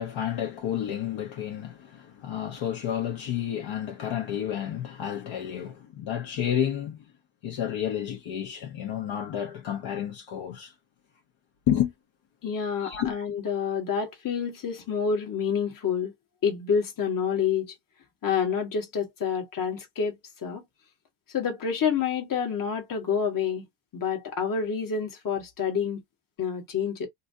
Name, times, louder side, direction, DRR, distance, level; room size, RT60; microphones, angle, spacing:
voice 1, 0.0-7.0 7.4-10.7 11.7-11.9 12.8-13.2, left 10 dB, 65° left, 1.2 m, -30 dB
voice 2, 12.4-16.1 16.4-17.7 18.2-20.1 20.4-20.6 21.3-23.6 23.9-26.0 26.4-27.1, left 6 dB, 40° left, 1.4 m, -28 dB
3.0 x 2.6 x 2.7 m
cardioid pair, 105°, 50 cm